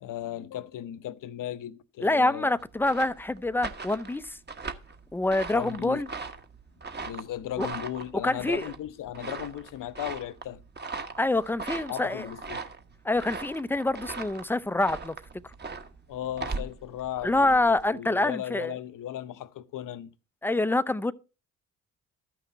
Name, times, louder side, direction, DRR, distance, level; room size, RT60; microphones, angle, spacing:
voice 1, 0.0-2.6 5.5-6.0 7.0-10.6 11.9-12.6 16.1-20.1, left 12 dB, 60° left, 0.8 m, -36 dB
voice 2, 2.0-4.4 5.1-6.1 7.6-7.7 8.2-8.7 11.2-12.3 13.0-15.1 17.2-18.8 20.4-21.1, left 2 dB, 5° left, 0.5 m, -26 dB
sound 1, 2.6-17.9, right 4 dB, 30° right, 1.2 m, -39 dB
13.0 x 6.0 x 4.5 m
supercardioid pair, 60°, 35 cm